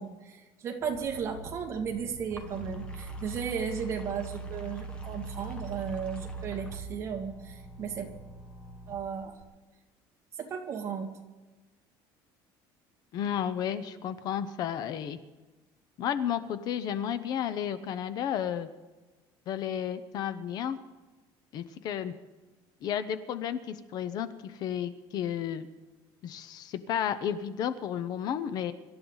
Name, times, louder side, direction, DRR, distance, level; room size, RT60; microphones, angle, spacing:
voice 1, 0.0-8.1 8.9-9.3 10.4-11.1, right 7 dB, 30° right, 2 dB, 2.1 m, -35 dB
sound 1, 0.8-9.4, right 3 dB, 10° left, 1.6 m, -42 dB
voice 2, 13.1-15.2 16.0-18.7 19.5-20.8 21.5-22.1 22.8-25.7 26.2-28.7, left 9 dB, 45° left, 12 dB, 0.8 m, -32 dB
25.0 x 12.5 x 4.0 m, 1.2 s
cardioid pair, 175°, 10 cm